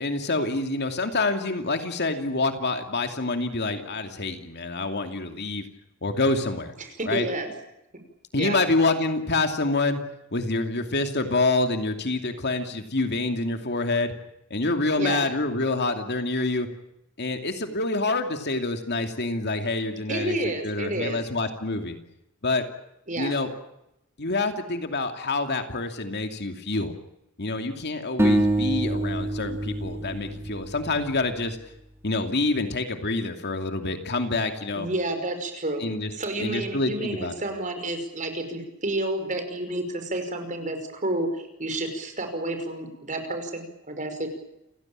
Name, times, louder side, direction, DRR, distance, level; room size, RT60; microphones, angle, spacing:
voice 1, 0.0-5.6 6.0-6.7 7.1-7.3 8.3-10.0 10.3-14.1 14.5-16.7 17.2-20.4 20.6-22.0 22.4-22.6 23.2-23.5 24.2-26.9 27.4-31.6 32.0-34.9 35.8-36.1 36.4-37.3, left 2 dB, 50° left, 6 dB, 2.6 m, -27 dB
voice 2, 6.8-7.5 8.4-8.6 15.0-15.2 20.1-21.2 23.1-23.3 34.8-41.3 41.6-44.3, right 1 dB, 35° right, 6 dB, 5.5 m, -30 dB
sound 1, 28.2-31.4, right 1 dB, 10° right, 3.3 m, -26 dB
29.5 x 17.0 x 8.8 m, 0.86 s
head